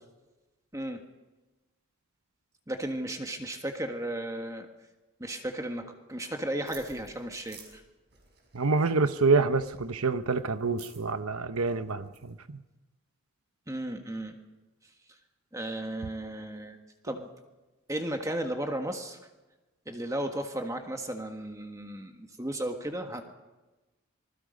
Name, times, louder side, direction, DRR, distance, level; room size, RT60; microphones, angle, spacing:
voice 1, 2.7-4.7 5.2-7.8 13.7-14.3 15.5-16.8 17.0-17.3 17.9-19.2 19.8-23.2, right 1 dB, 15° right, 4 dB, 1.6 m, -34 dB
sound 1, 6.7-12.3, right 6 dB, 50° right, 5.5 m, -54 dB
voice 2, 8.5-12.6, right 4 dB, 85° right, 11 dB, 0.9 m, -27 dB
26.5 x 20.5 x 5.3 m, 1.1 s
head